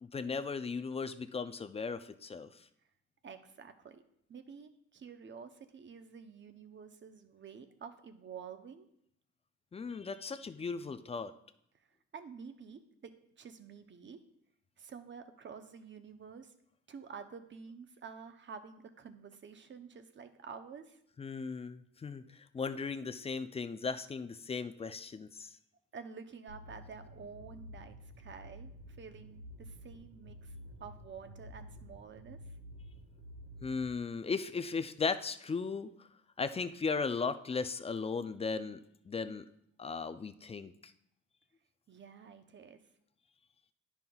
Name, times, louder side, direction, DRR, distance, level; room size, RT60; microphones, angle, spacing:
voice 1, 0.0-2.6 9.7-11.3 21.2-25.5 33.6-36.1 36.4-38.8 39.1-39.5 39.8-40.9, left 4 dB, 20° left, 11 dB, 0.4 m, -37 dB
voice 2, 3.2-4.0 4.3-8.9 12.1-14.2 14.8-16.5 16.9-21.0 25.9-30.5 30.8-32.5 41.9-42.8, right 6 dB, 40° right, 8 dB, 0.7 m, -50 dB
sound 1, 26.5-33.9, equal, 70° right, 1.6 m, -51 dB
10.5 x 5.6 x 2.3 m, 0.73 s
cardioid pair, 90°, 30 cm